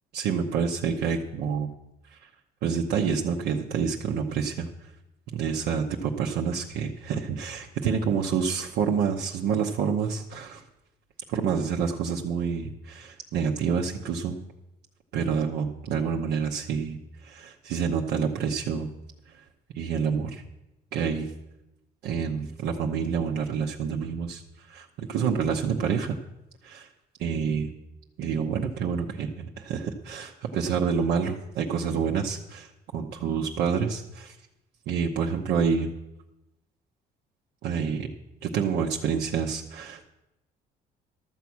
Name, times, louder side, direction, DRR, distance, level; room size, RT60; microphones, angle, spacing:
voice 1, 0.1-1.7 2.1-2.3 2.6-4.7 5.3-10.6 11.3-14.4 15.1-18.9 19.7-20.4 20.9-21.3 22.0-24.4 24.7-26.2 26.6-26.9 27.2-27.7 28.2-34.3 34.9-35.9 37.6-38.1 38.4-40.1, right 6 dB, 80° right, 0 dB, 0.9 m, -28 dB
12.5 x 7.1 x 6.2 m, 0.93 s
cardioid pair, 110°, 17 cm